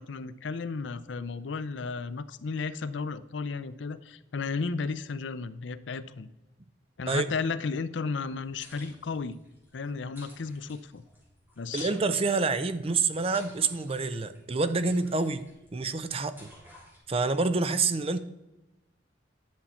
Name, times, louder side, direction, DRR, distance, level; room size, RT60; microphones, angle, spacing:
voice 1, 0.0-6.3 7.0-9.4 9.7-11.0 11.6-11.9, left 4 dB, 75° left, 0.5 m, -34 dB
sound 1, 8.3-17.0, equal, 10° right, 3.4 m, -53 dB
voice 2, 11.7-15.4 15.7-16.5 17.1-18.2, right 4 dB, 30° right, 0.5 m, -27 dB
10.5 x 7.0 x 4.3 m
head